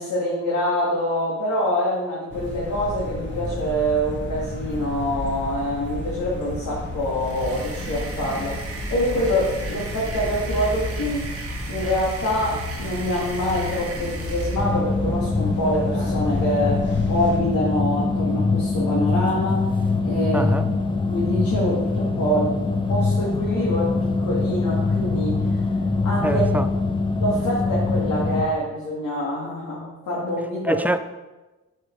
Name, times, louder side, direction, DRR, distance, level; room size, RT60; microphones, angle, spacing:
voice 1, 0.0-11.3 11.7-19.6 20.0-20.5 21.1-25.8 26.0-26.4 27.2-30.8, equal, 60° left, 1.8 m, -25 dB
sound 1, 2.3-17.4, left 1 dB, 35° left, 1.6 m, -32 dB
sound 2, 7.1-14.8, right 3 dB, 45° right, 1.2 m, -37 dB
sound 3, 14.6-28.4, left 3 dB, 15° left, 0.7 m, -23 dB
voice 2, 20.3-20.7 26.2-26.7 30.6-31.0, right 1 dB, 5° right, 0.4 m, -23 dB
6.4 x 6.3 x 3.7 m
cardioid pair, 90°, 33 cm